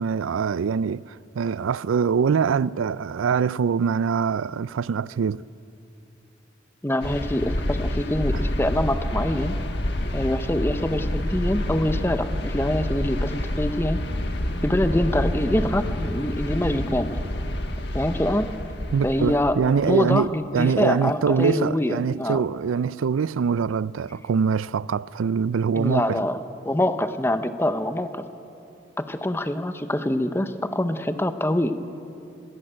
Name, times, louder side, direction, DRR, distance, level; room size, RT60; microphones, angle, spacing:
voice 1, 0.0-5.4 18.9-26.2, right 6 dB, 85° right, 0.4 m, -24 dB
voice 2, 6.8-9.6 10.1-14.0 14.6-17.2 17.9-18.5 19.0-22.4 25.8-28.2 29.0-31.7, left 1 dB, 10° left, 0.7 m, -25 dB
sound 1, 7.0-19.5, left 1 dB, 55° left, 1.5 m, -28 dB
sound 2, 14.2-17.2, equal, 15° right, 5.8 m, -39 dB
20.5 x 16.0 x 8.9 m
head